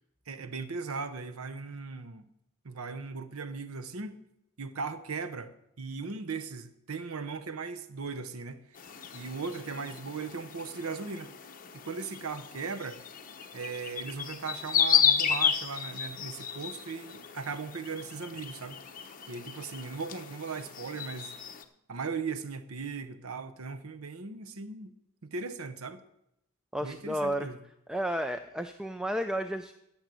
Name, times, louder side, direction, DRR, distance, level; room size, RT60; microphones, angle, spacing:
voice 1, 0.3-2.3 2.6-4.2 4.6-8.6 9.1-11.3 11.7-13.0 13.5-18.8 19.3-21.3 21.9-24.9 25.2-26.0 26.8-27.6, right 4 dB, 75° right, 0.8 m, -38 dB
sound 1, 8.8-21.6, left 8 dB, 40° left, 0.9 m, -33 dB
voice 2, 26.7-27.5 27.9-29.7, equal, 5° right, 0.4 m, -32 dB
12.0 x 7.2 x 7.6 m
head